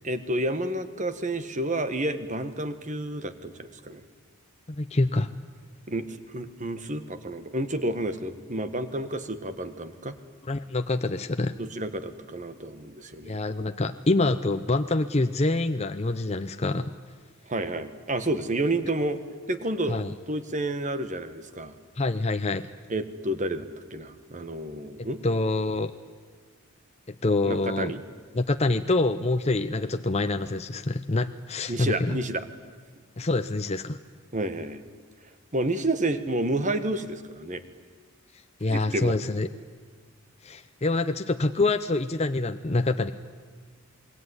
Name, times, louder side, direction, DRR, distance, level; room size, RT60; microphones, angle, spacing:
voice 1, 0.0-4.0 5.9-10.1 11.6-13.4 17.5-19.2 19.5-20.0 20.3-21.7 22.9-25.2 27.5-28.0 31.7-32.4 34.3-34.8 35.5-37.6 38.7-39.1, right 1 dB, 35° right, 11 dB, 1.5 m, -30 dB
voice 2, 4.8-5.3 10.4-11.5 13.2-16.9 19.9-20.1 22.0-22.6 25.2-25.9 27.1-27.9 28.3-32.2 33.2-34.0 38.6-39.5 40.4-43.1, left 2 dB, 30° left, 8 dB, 0.7 m, -26 dB
27.5 x 21.0 x 9.7 m, 1.5 s
head